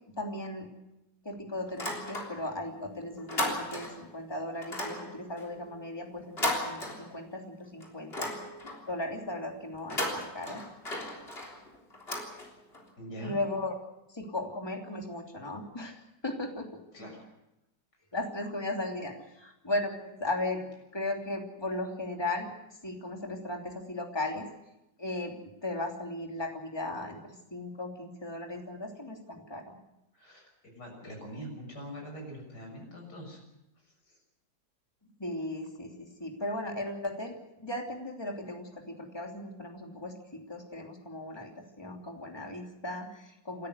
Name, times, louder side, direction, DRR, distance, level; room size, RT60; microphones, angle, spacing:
voice 1, 0.1-0.7 1.2-8.3 8.9-10.6 13.2-13.8 14.1-16.7 18.1-22.5 22.8-24.5 25.0-29.8 35.0-43.7, left 2 dB, 15° left, 2 dB, 3.0 m, -37 dB
sound 1, 1.7-2.6 2.9-4.1 4.6-7.5 7.8-8.9 9.7-12.9, left 1 dB, 35° left, 3.8 m, -36 dB
voice 2, 13.0-13.4 16.9-17.3 30.1-33.4 33.8-34.2, equal, 70° left, 0 dB, 7.5 m, -44 dB
28.0 x 13.5 x 8.1 m, 0.89 s
omnidirectional pair, 1.9 m